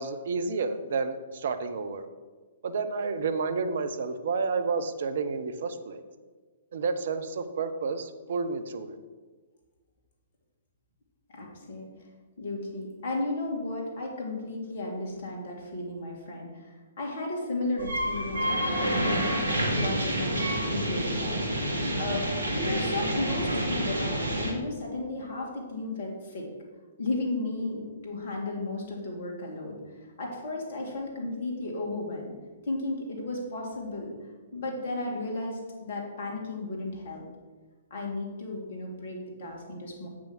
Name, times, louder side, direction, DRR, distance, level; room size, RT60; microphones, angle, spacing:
voice 1, 0.0-2.1 2.6-6.0 6.7-9.0, right 4 dB, 55° right, 10 dB, 0.8 m, -30 dB
voice 2, 11.3-11.9 12.4-26.5 27.0-29.8 30.2-32.3 32.7-34.2 34.5-37.3 37.9-40.1, left 2 dB, 55° left, -1 dB, 2.7 m, -34 dB
sound 1, 17.8-24.5, right 1 dB, 75° right, 1.8 m, -28 dB
8.4 x 6.2 x 6.0 m, 1.4 s
figure-of-eight pair, 115°, 0 cm